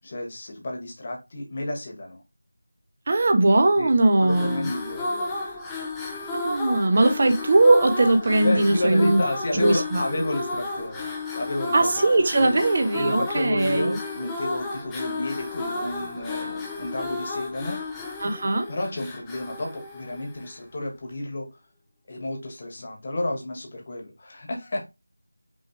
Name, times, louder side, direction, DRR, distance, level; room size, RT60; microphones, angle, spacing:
voice 1, 0.0-2.2 3.8-3.9 4.2-5.3 8.4-11.1 11.3-11.7 12.4-12.6 12.9-17.8 18.7-21.5 22.1-24.8, left 1 dB, 30° left, 1.3 m, -31 dB
voice 2, 3.1-4.7 6.3-9.2 9.5-10.2 11.7-14.0 18.2-18.7, right 2 dB, 35° right, 0.7 m, -20 dB
sound 1, 4.2-20.7, left 3 dB, 5° left, 0.5 m, -33 dB
5.5 x 3.0 x 3.1 m
figure-of-eight pair, 170°, 0 cm